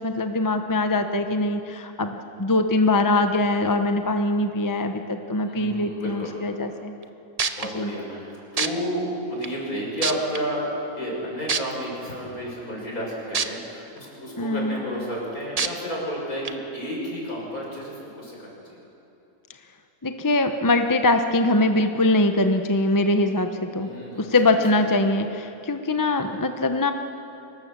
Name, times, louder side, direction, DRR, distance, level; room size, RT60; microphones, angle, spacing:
voice 1, 0.0-6.9 7.7-8.0 14.4-14.8 20.0-23.9 24.2-26.9, left 2 dB, 15° left, 6 dB, 0.7 m, -22 dB
voice 2, 5.4-6.3 7.6-10.6 11.0-18.8 23.7-24.9, equal, 60° left, -2 dB, 6.6 m, -32 dB
sound 1, 7.0-7.1 7.4-7.7 8.6-8.7 9.4-9.5 10.0-10.4 11.5-11.6 13.3-13.5 14.0-14.1 15.6-15.7 16.4-16.5, right 5 dB, 35° right, 0.6 m, -24 dB
25.0 x 19.0 x 7.5 m, 2.9 s
omnidirectional pair, 1.7 m